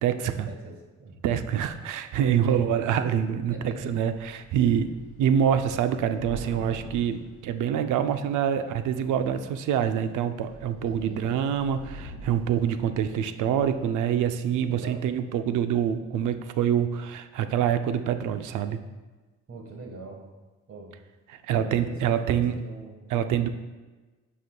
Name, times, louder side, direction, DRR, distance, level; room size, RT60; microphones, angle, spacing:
voice 1, 0.0-0.5 1.2-4.9 5.2-18.8 21.4-22.5 23.1-23.5, right 9 dB, 80° right, 10 dB, 0.5 m, -26 dB
voice 2, 2.4-3.1 3.5-3.9 11.0-11.3 14.7-15.0 19.5-20.3 20.7-21.0 21.5-23.5, right 3 dB, 45° right, 1 dB, 1.5 m, -42 dB
Thunder / Rain, 4.1-8.2 9.0-9.4 9.8-10.0 10.3-14.0, right 1 dB, 85° left, 0.9 m, -45 dB
9.3 x 5.5 x 2.3 m, 1.2 s
cardioid pair, 90°, 30 cm